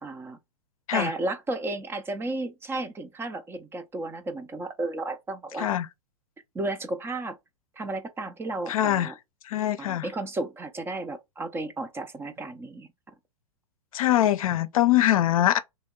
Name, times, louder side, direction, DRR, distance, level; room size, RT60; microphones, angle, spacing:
voice 1, 0.0-0.4 0.9-5.7 6.5-7.4 7.8-9.1 9.8-12.9, right 2 dB, 10° right, 0.4 m, -33 dB
voice 2, 8.7-9.1 9.4-10.1 13.9-15.6, left 13 dB, 70° left, 0.5 m, -23 dB
3.0 x 2.8 x 3.6 m
hypercardioid pair, 110°, 19 cm